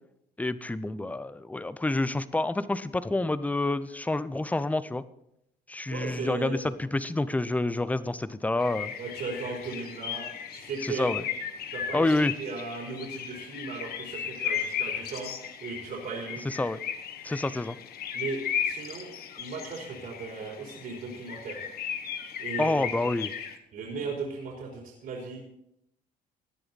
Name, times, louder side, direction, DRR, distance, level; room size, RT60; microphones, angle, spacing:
voice 1, 0.4-5.0 5.7-8.9 10.8-11.2 11.9-12.3 16.4-16.8 17.2-17.8 22.6-23.3, left 2 dB, 10° left, 15 dB, 0.6 m, -28 dB
voice 2, 5.9-6.7 9.0-10.2 10.5-11.1 11.7-15.3 15.6-16.4 18.1-19.1 19.4-21.7 22.4-23.1 23.7-25.6, right 4 dB, 60° right, -2 dB, 3.9 m, -37 dB
sound 1, 8.6-23.6, left 8 dB, 65° left, 1.5 m, -36 dB
16.5 x 10.5 x 4.1 m, 0.78 s
cardioid pair, 110°, 17 cm